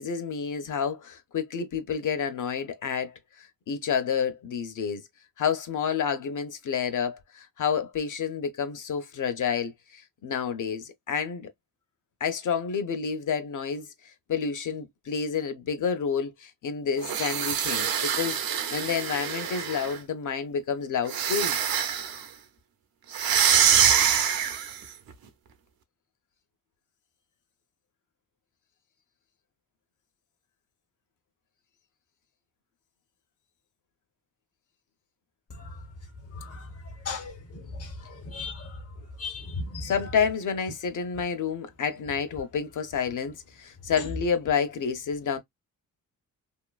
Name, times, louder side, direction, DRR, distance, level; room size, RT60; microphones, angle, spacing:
voice 1, 0.0-5.0 5.4-11.5 12.2-13.9 14.3-21.6 39.8-45.4, left 6 dB, 60° left, 0.9 m, -29 dB
sound 1, 17.0-20.0 21.1-22.2 23.1-24.8, right 8 dB, 80° right, 0.7 m, -25 dB
voice 2, 37.0-37.9 38.3-38.7 39.2-39.9, left 3 dB, 45° left, 1.0 m, -36 dB
2.9 x 2.4 x 2.3 m
cardioid pair, 70°, 35 cm